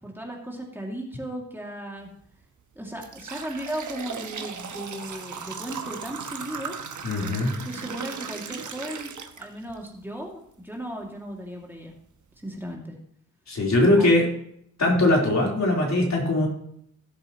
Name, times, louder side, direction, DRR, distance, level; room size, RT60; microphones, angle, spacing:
voice 1, 0.0-2.1 2.8-6.8 7.5-11.9 12.4-13.0 14.0-14.1, right 1 dB, 5° right, -1 dB, 2.3 m, -36 dB
sound 1, 2.1-2.2 2.7-9.9 10.3-10.4 11.3-11.4 11.9-12.0 12.4-12.7, right 6 dB, 70° right, 1.2 m, -37 dB
voice 2, 7.0-7.5 13.5-14.3 14.8-16.5, left 1 dB, 65° left, -2 dB, 3.7 m, -21 dB
17.5 x 7.7 x 3.0 m, 0.68 s
wide cardioid pair, 115°, 31 cm